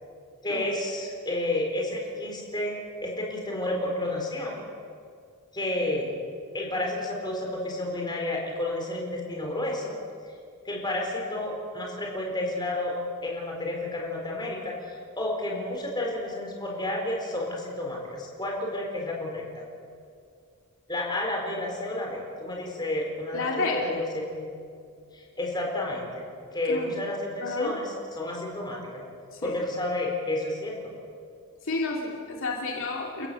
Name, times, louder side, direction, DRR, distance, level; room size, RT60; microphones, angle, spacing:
voice 1, 0.4-4.6 5.5-6.1 6.5-9.9 10.6-12.9 13.2-19.4 20.9-24.5 25.1-29.0 29.4-30.8, left 1 dB, 20° left, 0 dB, 4.5 m, -31 dB
voice 2, 23.3-23.9 26.7-26.9 27.4-27.7 29.3-29.5 31.6-33.3, left 3 dB, 60° left, -1 dB, 2.7 m, -30 dB
30.0 x 15.5 x 7.0 m, 2.3 s
head